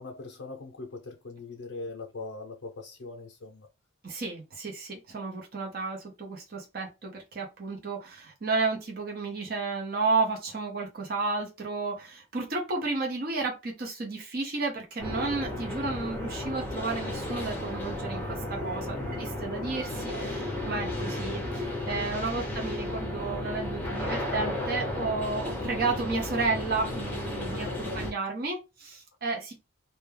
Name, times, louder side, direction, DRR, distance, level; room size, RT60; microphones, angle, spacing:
voice 1, 0.0-3.7 18.9-19.2 22.3-22.5 27.5-28.0, left 3 dB, 65° left, 0.5 m, -41 dB
voice 2, 4.0-29.5, right 3 dB, 45° right, 0.6 m, -32 dB
sound 1, 15.0-28.1, left 1 dB, 10° left, 0.6 m, -33 dB
Wind instrument woodwind instrument, 16.0-19.2 19.6-23.0, right 4 dB, 60° right, 1.0 m, -48 dB
2.2 x 2.1 x 3.2 m
head